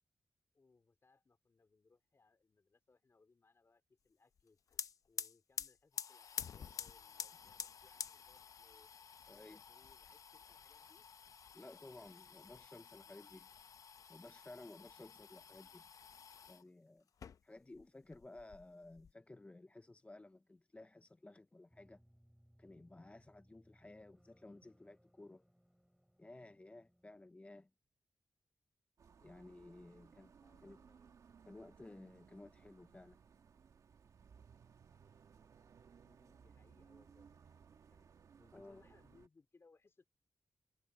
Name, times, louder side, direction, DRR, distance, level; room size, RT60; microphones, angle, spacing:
voice 1, 0.5-4.6 5.1-8.9 9.3-11.1 29.8-31.1 36.0-38.1 38.4-40.1, left 3 dB, 50° left, 3.5 m, -70 dB
sound 1, 4.4-4.5 4.7-16.6 17.1-17.9 18.1-19.1, left 7 dB, 80° left, 0.7 m, -49 dB
voice 2, 9.3-9.6 11.5-13.5 14.1-15.8 16.5-17.1 17.4-22.0 22.6-25.4 26.2-27.7 29.2-30.3 30.6-30.8 31.5-33.2 38.5-38.8, left 2 dB, 25° left, 0.5 m, -56 dB
sound 2, 21.7-27.3, equal, 5° right, 6.1 m, -70 dB
sound 3, 29.0-39.3, right 6 dB, 85° right, 2.0 m, -63 dB
cardioid pair, 55°, 6 cm